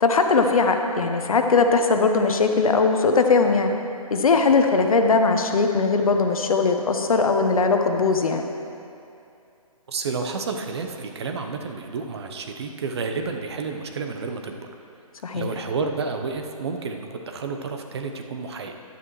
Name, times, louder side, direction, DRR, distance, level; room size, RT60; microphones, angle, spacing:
voice 1, 0.0-3.7 4.1-8.4 15.2-15.5, left 4 dB, 65° left, 5 dB, 0.9 m, -20 dB
voice 2, 9.9-14.7 15.3-18.7, right 4 dB, 45° right, 5 dB, 0.7 m, -30 dB
11.0 x 9.3 x 3.1 m, 2.7 s
hypercardioid pair, 155°, 19 cm